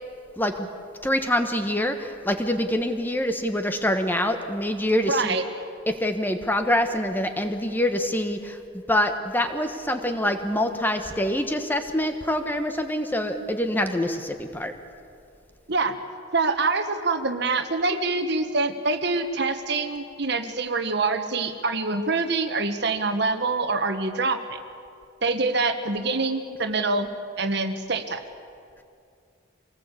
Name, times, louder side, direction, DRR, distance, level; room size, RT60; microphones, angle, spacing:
voice 1, 0.4-0.7 1.0-5.4 5.9-8.6 8.9-14.7, left 1 dB, 10° left, 6 dB, 1.3 m, -25 dB
voice 2, 5.1-5.4 15.7-15.9 16.3-24.6 25.2-27.1 27.4-28.2, right 3 dB, 55° right, 8 dB, 1.5 m, -25 dB
25.0 x 19.5 x 8.4 m, 2.4 s
head